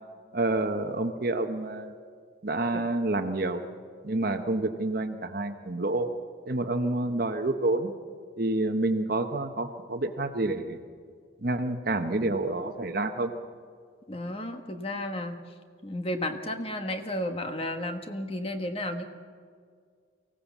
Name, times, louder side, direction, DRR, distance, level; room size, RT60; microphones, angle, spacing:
voice 1, 0.3-1.9 2.4-3.6 4.0-6.1 6.5-7.9 8.4-10.8 11.4-13.3, right 2 dB, 50° right, 7 dB, 1.0 m, -28 dB
voice 2, 14.1-15.4 15.8-19.0, left 1 dB, 30° left, 6 dB, 1.4 m, -33 dB
24.0 x 16.5 x 7.3 m, 2.1 s
head